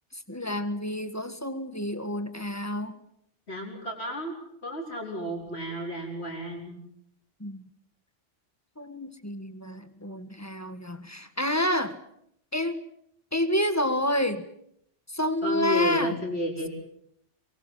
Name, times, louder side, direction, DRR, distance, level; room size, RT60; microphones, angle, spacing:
voice 1, 0.1-3.0 7.4-7.6 8.8-12.0 12.5-12.8 13.3-14.4 15.1-16.2, left 1 dB, 15° left, 10 dB, 1.5 m, -29 dB
voice 2, 3.5-4.3 4.6-6.8 15.4-16.7, right 1 dB, 60° left, 0 dB, 5.1 m, -32 dB
24.0 x 23.0 x 7.4 m, 0.72 s
omnidirectional pair, 1.2 m